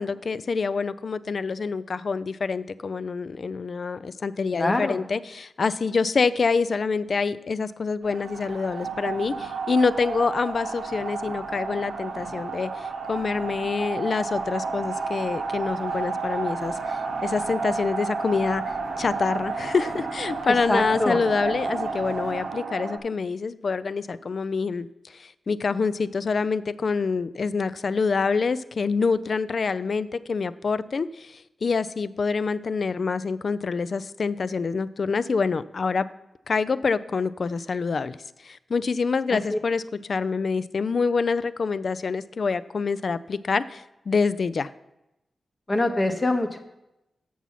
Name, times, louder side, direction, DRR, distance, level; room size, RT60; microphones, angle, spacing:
voice 1, 0.0-36.1 36.5-38.2 38.4-44.7, left 4 dB, 50° left, 14 dB, 0.3 m, -26 dB
voice 2, 4.5-5.0 20.5-21.2 39.3-39.6 45.7-46.6, left 2 dB, 20° left, 6 dB, 0.8 m, -24 dB
sound 1, 8.0-23.0, right 4 dB, 75° right, 0.9 m, -31 dB
8.2 x 6.1 x 5.6 m, 0.89 s
wide cardioid pair, 155°, 0 cm